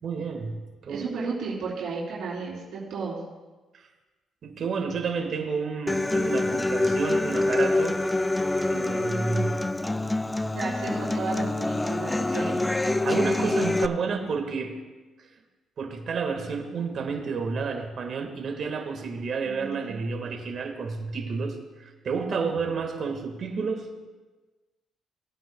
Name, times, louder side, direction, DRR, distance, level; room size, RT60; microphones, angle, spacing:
voice 1, 0.0-1.0 3.7-3.9 4.4-8.0 8.6-9.7 12.3-12.5 12.9-14.7 15.8-23.9, right 5 dB, 55° right, 4 dB, 1.7 m, -30 dB
voice 2, 0.9-3.2 10.5-12.6 19.5-19.9, right 4 dB, 80° right, -6 dB, 3.5 m, -33 dB
Human voice / Acoustic guitar, 5.9-13.9, left 2 dB, 15° left, 0.4 m, -26 dB
20.5 x 9.0 x 2.3 m, 1.2 s
cardioid pair, 90°, 0 cm